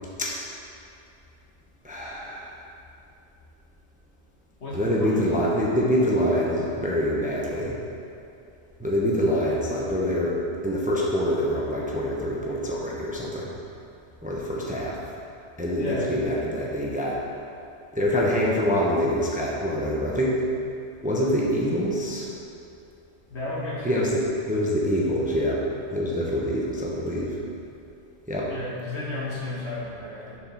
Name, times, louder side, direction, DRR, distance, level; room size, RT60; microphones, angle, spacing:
voice 1, 1.8-2.6 4.7-7.8 8.8-13.5 14.2-15.0 15.6-17.2 17.9-20.3 21.0-22.3 23.8-24.2 24.5-25.6 25.9-27.4 28.3-28.5, equal, 10° right, -4 dB, 0.8 m, -25 dB
voice 2, 4.6-5.4 15.8-16.2 23.3-24.0 28.5-30.4, left 2 dB, 65° left, -6 dB, 1.8 m, -33 dB
7.3 x 4.8 x 5.6 m, 2.7 s
omnidirectional pair, 1.2 m